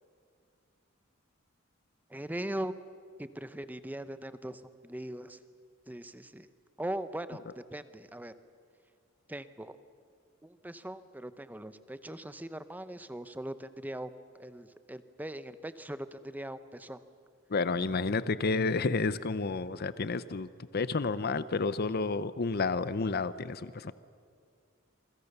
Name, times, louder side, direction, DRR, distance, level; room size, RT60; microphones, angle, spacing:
voice 1, 2.1-2.7 3.2-5.4 5.9-6.5 6.8-8.3 9.3-9.8 10.4-14.1 14.4-17.0, right 1 dB, 10° right, 12 dB, 0.9 m, -40 dB
voice 2, 17.5-23.9, left 4 dB, 50° left, 15 dB, 0.7 m, -30 dB
28.0 x 24.0 x 6.8 m, 2.2 s
head